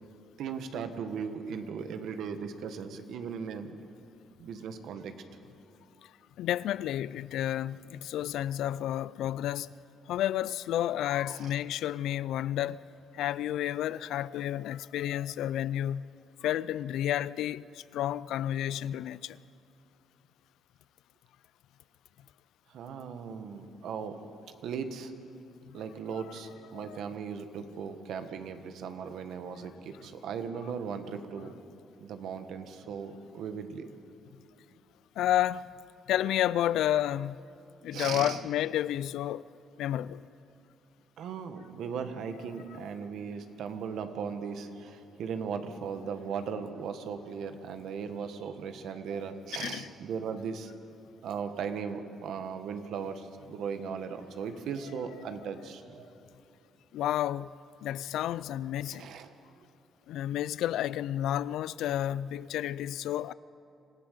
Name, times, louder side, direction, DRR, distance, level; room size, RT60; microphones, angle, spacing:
voice 1, 0.4-3.7 4.4-5.1 11.4-11.5 22.7-24.2 24.6-25.1 25.7-31.5 32.0-33.9 37.9-38.4 41.2-50.7 51.2-56.1 58.9-59.3, right 6 dB, 75° right, 1.4 m, -37 dB
voice 2, 6.4-9.7 10.1-12.8 13.1-16.0 16.4-19.4 25.7-25.8 26.1-26.2 26.7-27.0 35.2-35.7 36.1-37.4 37.8-39.4 39.8-40.3 42.7-42.9 49.5-49.9 55.3-55.4 56.9-57.5 57.8-59.1 60.1-63.3, left 12 dB, 85° left, 0.4 m, -31 dB
26.0 x 15.5 x 6.7 m
cardioid pair, 90°, 0 cm